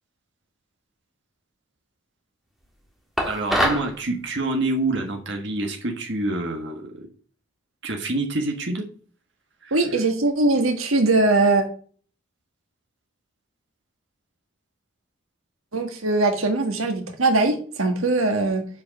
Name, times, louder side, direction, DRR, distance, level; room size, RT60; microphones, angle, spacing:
sound 1, 3.2-3.9, equal, ahead, 1.4 m, -23 dB
voice 1, 3.3-7.1 7.8-8.8 9.6-10.0, right 2 dB, 55° right, 2 dB, 1.5 m, -27 dB
voice 2, 9.7-11.6 15.7-18.7, right 2 dB, 85° right, 5 dB, 1.6 m, -21 dB
7.5 x 5.2 x 5.9 m, 0.43 s
head